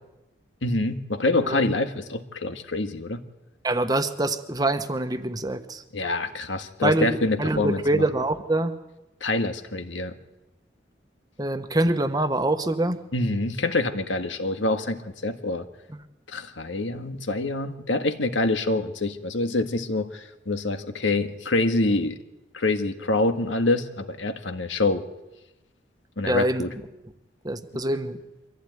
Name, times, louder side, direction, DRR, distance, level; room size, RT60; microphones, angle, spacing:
voice 1, 0.6-3.2 5.9-8.0 9.2-10.2 13.1-15.7 16.3-22.2 22.5-25.0 26.2-26.7, left 2 dB, 85° left, 7 dB, 1.7 m, -26 dB
voice 2, 1.4-1.7 3.6-5.8 6.8-8.7 11.4-13.0 26.3-26.8 27.4-28.2, right 2 dB, 20° right, 9 dB, 1.1 m, -25 dB
24.0 x 15.5 x 9.4 m, 0.99 s
head